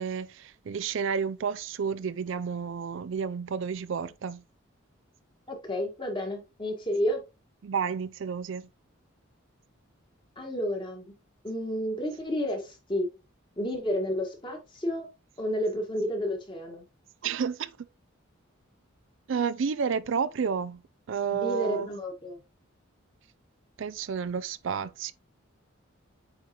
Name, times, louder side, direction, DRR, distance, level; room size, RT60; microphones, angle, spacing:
voice 1, 0.0-4.4 7.6-8.7 17.2-17.7 19.3-20.8 21.1-21.9 23.8-25.1, right 6 dB, 65° right, 0.4 m, -31 dB
voice 2, 5.5-7.2 10.4-11.1 11.4-13.1 13.6-15.1 15.4-16.8 21.3-22.4, equal, 25° left, 1.7 m, -31 dB
8.7 x 3.7 x 3.0 m
head